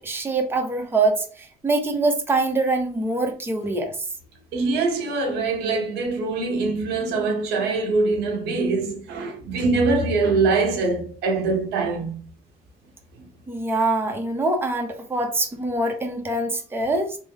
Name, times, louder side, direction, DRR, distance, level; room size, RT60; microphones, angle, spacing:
voice 1, 0.0-3.9 13.5-17.2, right 2 dB, 15° right, 0.6 m, -24 dB
voice 2, 4.5-12.2 13.2-13.3, right 3 dB, 90° right, 0.9 m, -23 dB
3.5 x 2.0 x 3.5 m
cardioid pair, 110°, 17 cm